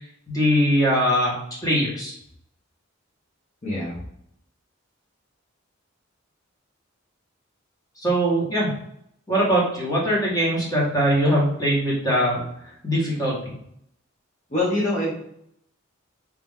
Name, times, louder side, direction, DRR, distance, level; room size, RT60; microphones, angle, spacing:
voice 1, 0.3-1.3 1.6-2.1 8.0-8.7 9.3-12.4 12.8-13.5, equal, 20° left, -6 dB, 1.5 m, -21 dB
voice 2, 3.6-4.0 14.5-15.1, left 1 dB, 35° left, -8 dB, 1.0 m, -24 dB
3.3 x 2.9 x 3.6 m, 0.72 s
head